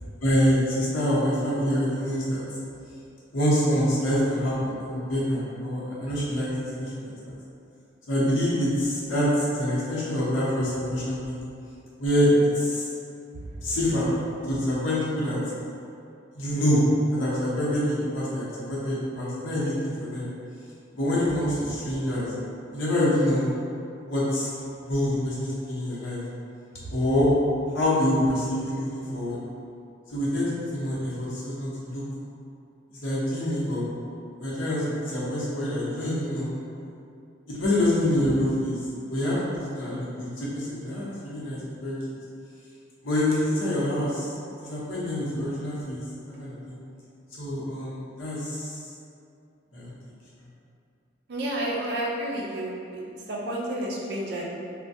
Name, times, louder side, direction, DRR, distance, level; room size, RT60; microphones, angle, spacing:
voice 1, 0.2-2.4 3.3-7.4 8.1-11.4 12.0-12.9 13.6-14.1 14.4-15.4 16.3-16.8 17.1-20.3 20.9-22.3 22.7-23.5 24.0-24.5 24.8-26.2 26.9-27.3 27.7-29.4 30.1-32.0 33.0-33.8 34.4-36.5 37.5-38.8 39.1-42.0 43.0-44.3 44.6-46.0 46.4-46.8 47.4-48.9 49.7-49.9, equal, 90° left, -8 dB, 0.8 m, -26 dB
voice 2, 51.3-54.4, right 1 dB, 55° right, -4 dB, 0.4 m, -31 dB
3.2 x 2.2 x 2.7 m, 2.5 s
head